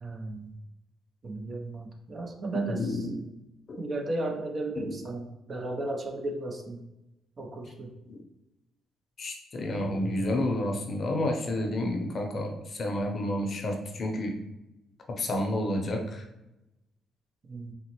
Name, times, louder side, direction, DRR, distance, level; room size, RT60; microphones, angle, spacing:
voice 1, 0.0-0.5 1.2-3.1 3.8-6.8 7.4-7.9 17.4-17.7, right 2 dB, 40° right, 3 dB, 0.5 m, -34 dB
voice 2, 2.5-3.2 3.7-3.8 4.8-4.9 8.1-8.2 9.2-14.3 15.1-16.2, left 1 dB, 45° left, 2 dB, 0.6 m, -30 dB
3.8 x 2.0 x 2.9 m, 0.94 s
cardioid pair, 90°, 0 cm